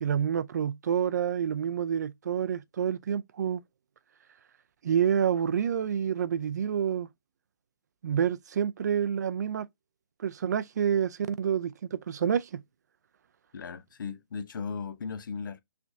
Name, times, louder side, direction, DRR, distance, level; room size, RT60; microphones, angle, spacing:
voice 1, 0.0-3.6 4.8-7.1 8.0-9.7 10.2-12.6, right 8 dB, 45° right, 0.4 m, -28 dB
voice 2, 13.5-15.6, left 5 dB, 55° left, 0.9 m, -37 dB
5.9 x 3.4 x 2.6 m
hypercardioid pair, 155°, 13 cm